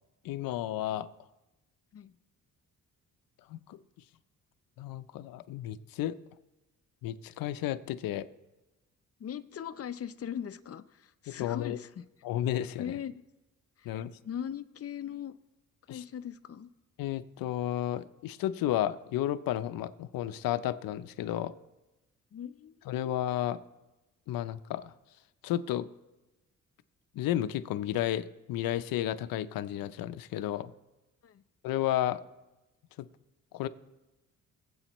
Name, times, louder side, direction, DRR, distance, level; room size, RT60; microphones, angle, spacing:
voice 1, 0.2-1.1 3.5-3.8 4.8-6.2 7.0-8.3 11.3-11.8 12.2-13.0 13.8-14.1 15.9-16.0 17.0-21.5 22.9-23.6 24.3-24.9 25.4-25.9 27.1-30.7 31.6-32.2 33.0-33.1 33.5-33.7, left 12 dB, 90° left, 12 dB, 0.6 m, -32 dB
voice 2, 9.2-12.1 12.8-13.2 13.8-13.9 14.2-15.3 15.9-16.7 22.3-23.0 31.2-31.4, left 9 dB, 45° left, 11 dB, 0.7 m, -40 dB
21.5 x 8.0 x 3.0 m, 1.0 s
cardioid pair, 90°, 34 cm